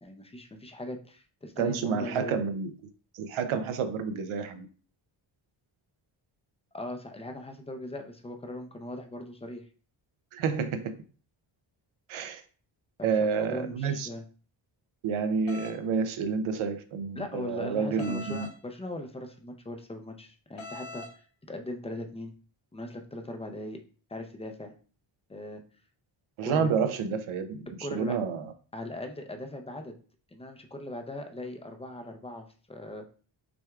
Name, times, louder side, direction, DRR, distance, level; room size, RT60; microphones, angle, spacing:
voice 1, 0.0-2.4 6.7-9.6 13.0-14.2 17.2-22.3 22.7-23.8 24.1-24.7 25.3-25.6 26.4-26.7 27.8-28.2 28.7-29.9 30.3-33.0, left 1 dB, 15° left, 5 dB, 0.5 m, -39 dB
voice 2, 1.6-2.7 3.1-4.7 10.3-10.9 12.1-12.4 13.0-14.1 15.0-18.5 26.4-28.5, right 6 dB, 85° right, 8 dB, 0.7 m, -29 dB
sound 1, 15.5-15.8 18.0-18.5 20.6-21.1, left 2 dB, 75° left, 1.1 m, -42 dB
6.0 x 3.4 x 2.3 m, 0.40 s
wide cardioid pair, 130°, 48 cm